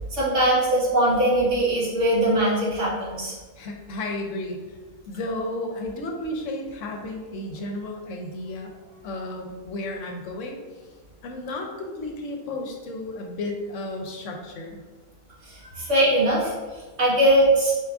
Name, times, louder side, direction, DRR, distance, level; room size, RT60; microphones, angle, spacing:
voice 1, 0.1-3.3 15.7-16.5 17.0-17.7, right 1 dB, 65° right, -6 dB, 1.4 m, -20 dB
voice 2, 3.6-4.6 5.1-8.7 9.0-10.6 11.2-14.8, left 2 dB, 70° left, 2 dB, 0.9 m, -33 dB
4.4 x 2.4 x 3.5 m, 1.3 s
omnidirectional pair, 1.4 m